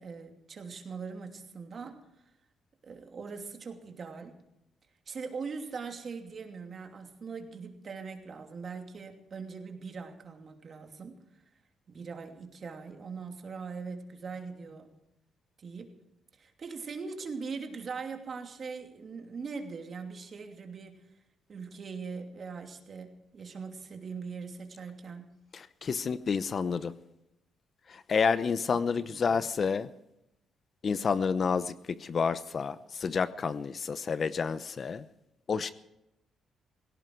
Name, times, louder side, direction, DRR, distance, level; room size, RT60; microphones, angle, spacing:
voice 1, 0.0-2.0 2.8-4.4 5.1-11.2 11.9-14.9 15.6-15.9 16.4-21.0 21.5-25.4 29.0-29.3, right 5 dB, 45° right, 2.8 m, -41 dB
voice 2, 25.5-26.9 27.9-29.9 30.8-35.1 35.5-35.7, left 5 dB, 45° left, 0.8 m, -29 dB
17.5 x 17.5 x 4.7 m
cardioid pair, 90°, 0 cm